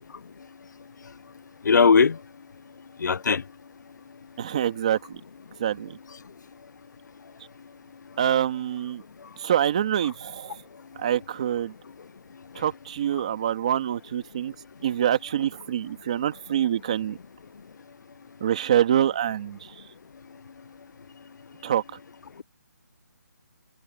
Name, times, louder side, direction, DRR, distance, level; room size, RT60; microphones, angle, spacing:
voice 1, 1.7-2.1 3.0-3.4, left 5 dB, 85° left, 0.4 m, -18 dB
voice 2, 4.4-5.2 5.6-6.0 8.2-9.0 9.4-10.6 11.0-11.7 12.6-14.5 14.8-17.2 18.4-19.6 21.6-21.8, right 10 dB, 20° right, 1.8 m, -25 dB
hypercardioid pair, 180°, 9 cm